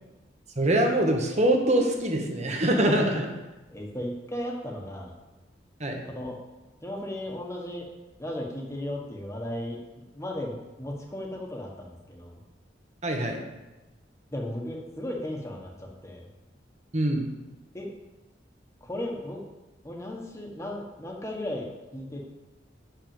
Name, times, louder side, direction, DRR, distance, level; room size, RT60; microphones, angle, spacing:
voice 1, 0.6-3.2 5.8-6.0 13.0-13.4 16.9-17.3, right 1 dB, 35° right, 2 dB, 1.3 m, -24 dB
voice 2, 3.7-5.1 6.0-6.4 6.8-7.9 8.2-9.8 10.1-12.4 14.3-16.2 17.7-17.9 18.8-19.4 19.8-22.3, left 1 dB, 15° left, 0 dB, 1.3 m, -35 dB
6.5 x 5.7 x 7.2 m, 1.1 s
head